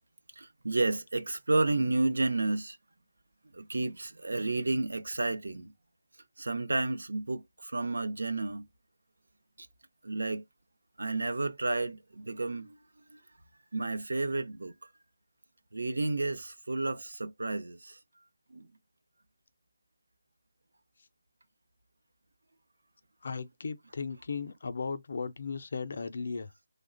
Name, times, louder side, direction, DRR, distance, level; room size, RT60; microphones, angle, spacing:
voice 1, 0.4-2.8 3.5-5.7 6.4-8.6 9.6-9.7 10.0-10.4 11.0-12.8 13.1-13.2 13.7-14.7 15.7-18.0 18.5-18.7, right 2 dB, 70° right, 0.6 m, -31 dB
voice 2, 23.2-26.5, left 5 dB, 40° left, 0.4 m, -36 dB
3.2 x 2.1 x 3.7 m
figure-of-eight pair, 175°, 0 cm